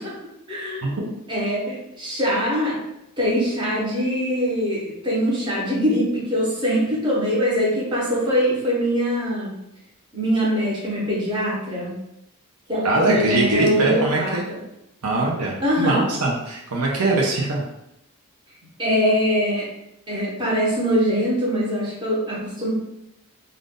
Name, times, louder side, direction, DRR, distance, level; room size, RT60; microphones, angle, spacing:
voice 1, 0.5-2.8 3.2-9.5 10.1-11.9 12.7-14.4 15.6-16.0 18.8-19.7 20.1-22.7, equal, 20° right, -7 dB, 1.0 m, -23 dB
voice 2, 12.8-14.4 15.0-17.6, right 2 dB, 90° right, -2 dB, 0.7 m, -22 dB
2.5 x 2.5 x 3.6 m, 0.84 s
head